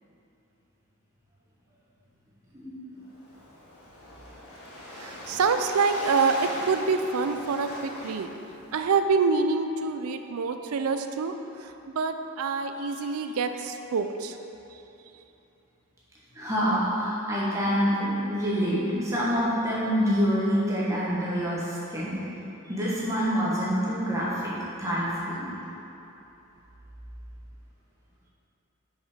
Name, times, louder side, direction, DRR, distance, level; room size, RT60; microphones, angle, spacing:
voice 1, 2.5-3.0 16.3-22.2 22.6-24.5 24.8-25.4, equal, 15° right, -8 dB, 1.4 m, -26 dB
Waves surf, 3.1-8.8, left 1 dB, 80° left, 1.2 m, -40 dB
voice 2, 4.9-8.3 8.7-14.4 14.7-14.8, right 4 dB, 80° right, 8 dB, 0.4 m, -26 dB
5.9 x 5.5 x 5.0 m, 2.9 s
head